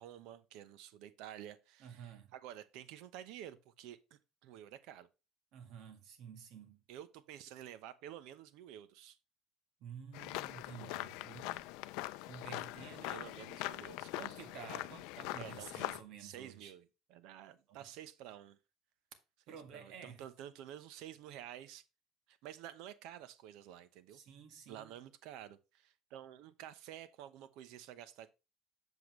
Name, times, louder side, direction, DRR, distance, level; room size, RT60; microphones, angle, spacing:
voice 1, 0.0-5.1 6.9-9.2 13.1-14.3 15.3-15.9 16.2-18.6 19.5-21.8 22.3-24.2 24.7-28.3, right 11 dB, 75° right, 0.9 m, -51 dB
voice 2, 1.8-2.3 5.5-6.8 9.8-12.0 12.3-13.3 14.2-16.7 17.7-17.8 19.5-20.2 24.1-24.9, right 7 dB, 60° right, 1.9 m, -51 dB
sound 1, 10.1-16.0, left 18 dB, 80° left, 0.5 m, -42 dB
8.1 x 7.0 x 3.2 m
cardioid pair, 145°, 0 cm